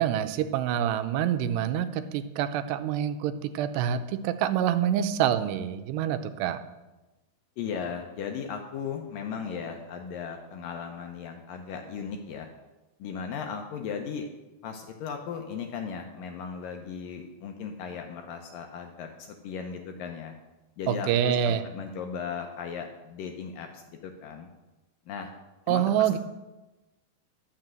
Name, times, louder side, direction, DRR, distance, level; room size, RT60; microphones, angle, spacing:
voice 1, 0.0-6.6 20.9-21.6 25.7-26.2, right 10 dB, 90° right, 10 dB, 2.8 m, -26 dB
voice 2, 7.6-12.5 13.0-14.3 14.6-20.3 20.8-23.7 24.0-24.5 25.1-25.3 25.7-26.1, left 6 dB, 75° left, 4 dB, 2.2 m, -36 dB
12.0 x 6.5 x 7.6 m, 1.1 s
omnidirectional pair, 4.7 m